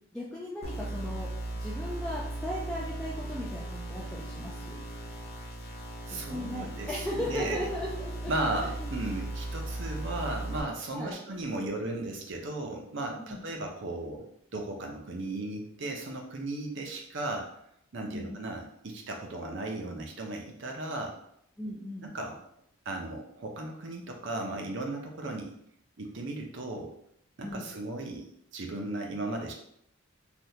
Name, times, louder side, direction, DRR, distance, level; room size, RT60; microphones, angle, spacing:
voice 1, 0.1-1.3 1.6-4.8 6.3-8.3 8.6-8.9 10.9-11.2 13.2-13.4 18.1-18.4 21.6-22.1 27.4-27.7, left 1 dB, 5° left, -6 dB, 0.3 m, -37 dB
sound 1, 0.6-10.6, right 1 dB, 45° left, 0.7 m, -37 dB
voice 2, 6.1-6.9 7.2-7.6 8.3-14.2 14.5-17.5 17.9-21.1 22.0-22.4 22.9-25.5 26.0-26.9 27.4-28.3 28.5-29.5, right 2 dB, 55° right, 2 dB, 0.6 m, -36 dB
3.4 x 2.3 x 2.7 m, 0.71 s
head